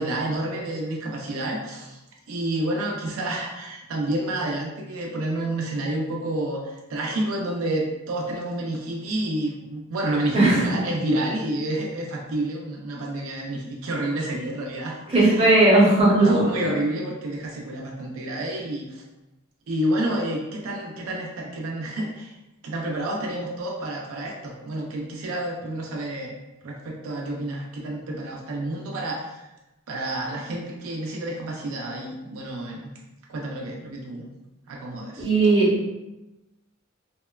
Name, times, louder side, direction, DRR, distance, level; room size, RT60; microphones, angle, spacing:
voice 1, 0.0-2.0 2.3-15.5 16.2-19.0 19.7-22.3 22.6-26.3 26.6-29.5 29.9-32.9 33.3-34.3 34.7-35.3, right 1 dB, 85° right, 0 dB, 0.4 m, -29 dB
voice 2, 15.1-16.5 35.2-35.7, right 2 dB, 30° right, -6 dB, 0.7 m, -17 dB
2.8 x 2.1 x 2.2 m, 1.0 s
head